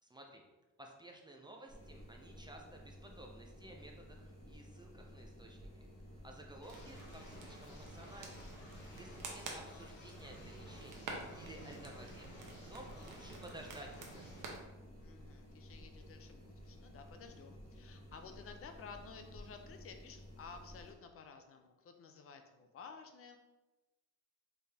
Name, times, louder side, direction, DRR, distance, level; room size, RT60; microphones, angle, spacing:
voice 1, 0.0-0.4 0.8-5.9 6.2-8.5 8.9-12.4 12.7-14.5, right 1 dB, 15° right, 1 dB, 0.4 m, -54 dB
sound 1, 1.7-20.9, equal, 20° left, 1.4 m, -54 dB
sound 2, 6.6-14.4, left 2 dB, 75° left, 1.0 m, -57 dB
sound 3, 6.7-14.6, right 3 dB, 85° right, 0.9 m, -50 dB
voice 2, 8.9-9.4 15.0-23.4, left 5 dB, 50° left, 6 dB, 0.5 m, -54 dB
4.4 x 3.4 x 3.4 m, 1.1 s
cardioid pair, 160°, 30 cm